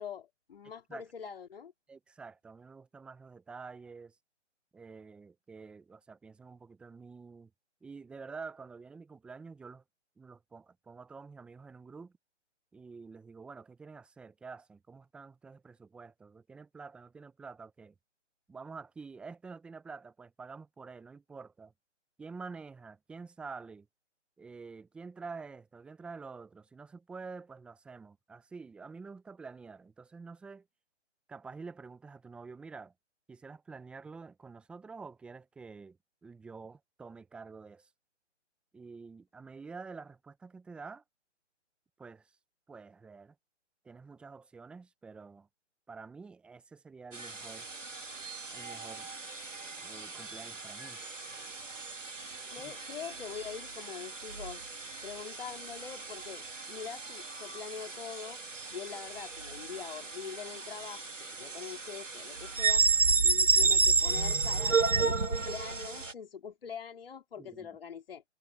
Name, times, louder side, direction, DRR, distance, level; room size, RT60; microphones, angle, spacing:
voice 1, 0.0-1.7 52.5-54.7 55.0-58.4 58.7-62.8 63.2-68.2, left 7 dB, 50° left, 3.0 m, -44 dB
voice 2, 1.9-4.2 4.7-7.5 7.8-9.8 10.2-12.1 12.7-17.9 18.5-21.7 22.2-23.9 24.4-30.7 31.3-32.9 33.3-37.9 38.7-41.0 42.0-42.4 42.7-43.3 43.8-45.5 45.9-47.7 48.5-49.1 49.8-51.0 52.6-52.7 67.4-67.7, right 4 dB, 5° right, 0.9 m, -48 dB
sound 1, 47.1-66.1, right 4 dB, 90° right, 2.7 m, -32 dB
figure-of-eight pair, 145°, 36 cm